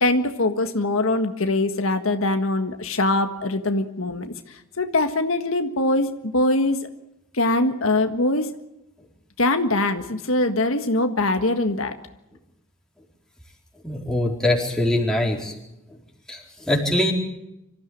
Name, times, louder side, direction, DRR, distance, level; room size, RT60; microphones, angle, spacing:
voice 1, 0.0-6.9 7.3-8.6 9.4-12.0, left 2 dB, 75° left, 7 dB, 1.7 m, -22 dB
voice 2, 13.8-15.5 16.3-17.1, left 1 dB, 5° left, -1 dB, 4.3 m, -23 dB
25.5 x 15.0 x 8.6 m, 0.89 s
head